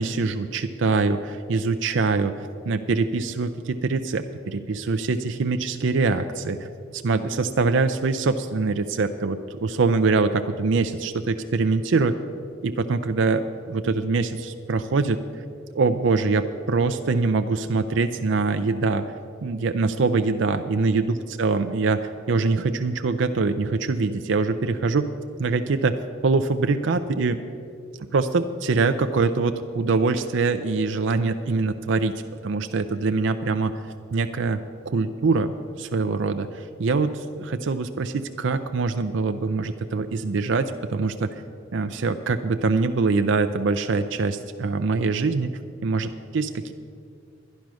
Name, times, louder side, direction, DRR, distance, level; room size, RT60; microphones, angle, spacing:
voice 1, 0.0-12.2 12.6-15.2 15.7-19.1 19.4-25.1 25.4-26.0 26.2-27.4 28.1-41.4 41.7-45.5 45.8-46.7, right 4 dB, 70° right, 8 dB, 0.5 m, -24 dB
12.0 x 10.5 x 6.2 m, 2.4 s
head